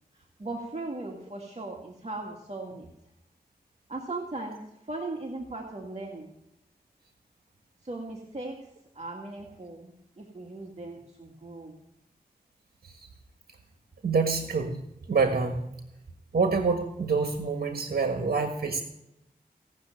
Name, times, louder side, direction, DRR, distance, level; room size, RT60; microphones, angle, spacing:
voice 1, 0.4-2.9 3.9-4.6 4.9-6.3 7.9-8.5 9.0-9.9 10.2-11.8, right 2 dB, 45° right, 0 dB, 2.1 m, -38 dB
voice 2, 14.0-14.8 15.1-15.6 16.3-18.8, right 4 dB, 70° right, 4 dB, 1.5 m, -26 dB
17.0 x 6.4 x 9.0 m, 0.85 s
cardioid pair, 45°, 16 cm